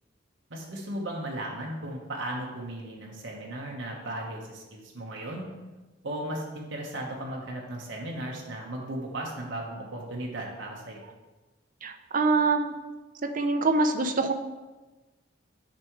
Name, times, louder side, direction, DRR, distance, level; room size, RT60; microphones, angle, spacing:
voice 1, 0.5-5.5 6.0-11.1, right 1 dB, 70° right, -2 dB, 1.2 m, -36 dB
voice 2, 11.8-12.7 13.3-14.3, right 3 dB, 45° right, 7 dB, 0.6 m, -24 dB
10.5 x 4.6 x 3.1 m, 1.2 s
head